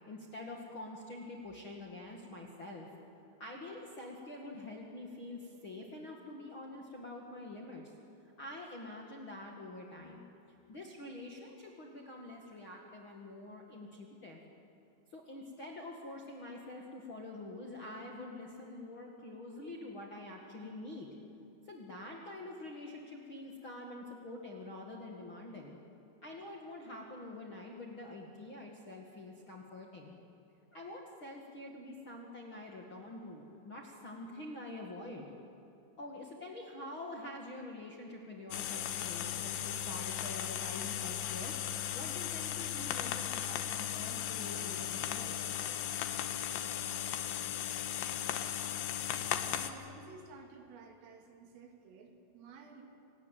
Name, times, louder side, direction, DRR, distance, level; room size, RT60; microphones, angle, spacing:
voice 1, 0.1-2.9 3.4-7.9 8.4-10.3 10.7-14.4 15.1-21.1 21.7-25.8 26.2-30.1 30.7-35.3 36.0-41.5 41.9-45.4, left 2 dB, 45° left, -1 dB, 1.7 m, -46 dB
sound 1, 38.5-49.7, left 11 dB, 75° left, 3.1 m, -37 dB
voice 2, 49.4-52.8, right 4 dB, 90° right, 3 dB, 5.2 m, -53 dB
26.5 x 19.0 x 9.2 m, 2.8 s
omnidirectional pair, 5.7 m